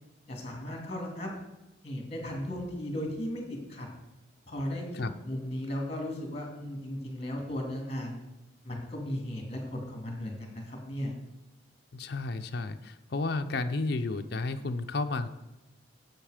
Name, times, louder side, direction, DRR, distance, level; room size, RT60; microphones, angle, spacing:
voice 1, 0.3-1.3 1.8-3.9 4.5-8.2 8.6-11.1, left 1 dB, 30° left, 1 dB, 2.3 m, -36 dB
voice 2, 11.9-15.3, left 3 dB, 55° left, 7 dB, 0.6 m, -32 dB
9.0 x 8.1 x 5.0 m, 0.98 s
head